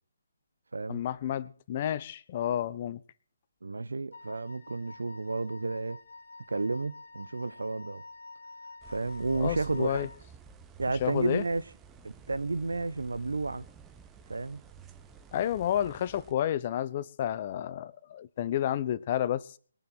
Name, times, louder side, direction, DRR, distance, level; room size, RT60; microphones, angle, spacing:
voice 1, 0.9-3.0 9.3-10.1 11.0-11.4 15.3-19.5, left 11 dB, 35° left, 0.9 m, -30 dB
voice 2, 3.6-6.0 6.5-8.0 8.9-10.1 10.8-11.6 12.0-13.6 14.3-14.6, right 3 dB, 75° right, 0.9 m, -32 dB
Wind instrument woodwind instrument, 4.1-10.2, left 3 dB, 65° left, 1.6 m, -48 dB
sound 1, 8.8-16.3, right 7 dB, 15° right, 1.1 m, -52 dB
22.5 x 8.9 x 4.5 m
figure-of-eight pair, 145°, 0 cm